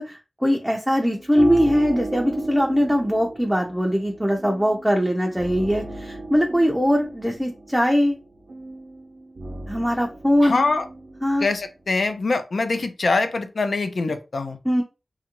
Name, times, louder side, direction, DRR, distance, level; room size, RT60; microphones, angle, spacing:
voice 1, 0.0-8.2 9.7-10.6 11.2-11.5 14.6-14.8, equal, 5° right, 1 dB, 0.5 m, -21 dB
sound 1, 0.9-12.1, right 2 dB, 80° right, 0.6 m, -35 dB
voice 2, 10.4-10.9 11.4-14.6, left 3 dB, 75° left, 7 dB, 0.5 m, -23 dB
2.9 x 2.4 x 2.9 m, 0.28 s
wide cardioid pair, 85°, 0 cm